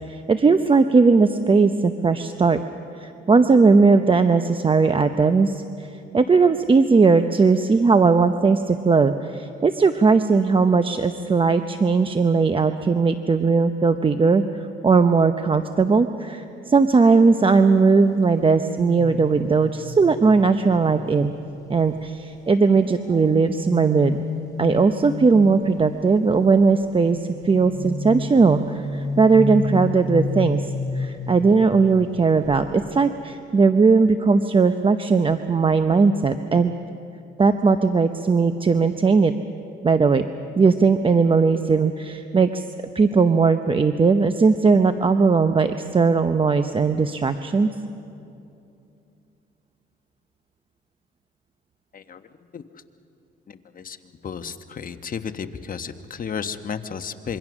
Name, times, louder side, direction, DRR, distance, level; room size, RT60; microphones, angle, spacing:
voice 1, 0.0-2.6 3.0-5.9 6.1-14.4 14.8-21.3 21.7-24.2 24.6-36.7 37.4-39.3 39.8-40.3 40.6-42.6 42.9-47.7, right 4 dB, 25° right, 9 dB, 0.7 m, -18 dB
sound 1, 18.4-22.0 22.6-25.9 26.9-32.2 32.4-32.7, left 4 dB, 15° left, 2.5 m, -32 dB
voice 2, 51.9-52.3 52.5-52.6 53.5-54.0 54.2-57.4, left 6 dB, 45° left, 8 dB, 1.1 m, -33 dB
26.0 x 23.5 x 6.2 m, 2.8 s
cardioid pair, 90°, 20 cm